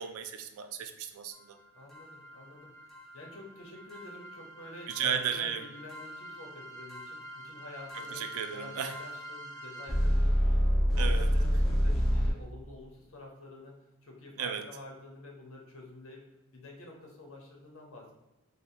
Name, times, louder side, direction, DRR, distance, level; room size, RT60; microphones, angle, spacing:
voice 1, 0.0-1.6 4.9-5.6 7.9-8.9 11.0-11.3 14.4-14.7, right 7 dB, 75° right, 8 dB, 0.3 m, -34 dB
voice 2, 1.7-2.7 3.1-8.2 8.5-13.7 14.0-16.2 16.5-18.1, left 2 dB, 65° left, 0 dB, 0.8 m, -48 dB
sound 1, 1.9-12.3, equal, ahead, 0.3 m, -31 dB
3.2 x 2.4 x 2.7 m, 1.0 s
head